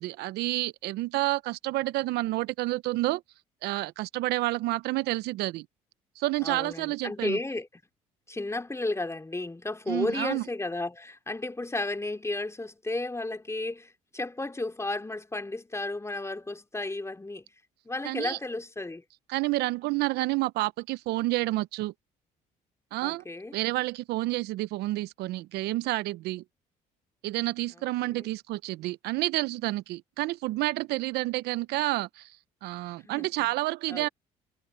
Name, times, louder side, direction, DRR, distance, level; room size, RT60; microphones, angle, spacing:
voice 1, 0.0-3.2 3.6-5.7 6.2-7.4 9.9-10.4 18.0-18.4 19.3-21.9 22.9-23.2 23.5-26.4 27.2-32.3 32.6-34.1, right 19 dB, 70° right, 0.8 m, -29 dB
voice 2, 6.4-7.7 8.3-17.5 17.9-19.0 23.0-23.6 27.7-28.3 32.9-33.5 33.9-34.1, left 2 dB, 15° left, 3.5 m, -33 dB
hypercardioid pair, 60°, 18 cm